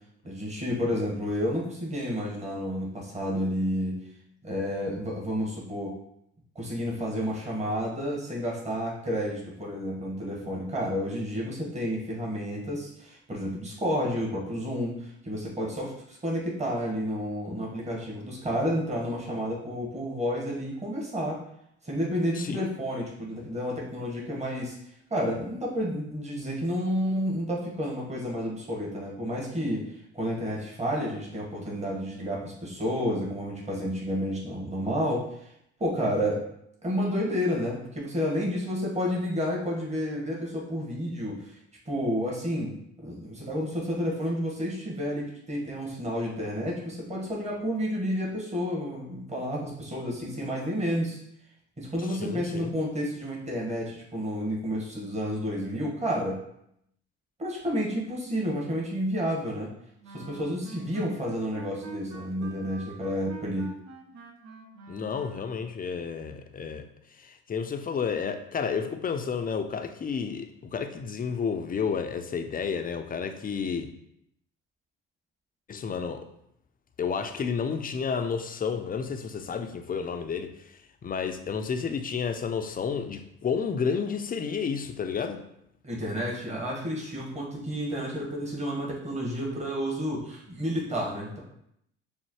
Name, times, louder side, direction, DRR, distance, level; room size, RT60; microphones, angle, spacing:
voice 1, 0.2-4.0 4.4-5.9 6.5-21.4 21.8-24.8 25.1-29.8 30.1-35.3 35.8-36.4 36.8-41.6 41.8-51.2 51.8-56.4 57.4-59.7 60.1-63.7 85.8-91.4, equal, 20° right, -3 dB, 1.5 m, -30 dB
voice 2, 22.4-22.7 52.1-52.7 64.9-73.9 75.7-76.3 77.0-80.7 81.0-85.4, left 6 dB, 30° left, 7 dB, 0.5 m, -31 dB
sound 1, 60.0-65.7, right 4 dB, 65° right, 0.8 m, -45 dB
6.3 x 2.1 x 3.1 m, 0.75 s
supercardioid pair, 65°, 30 cm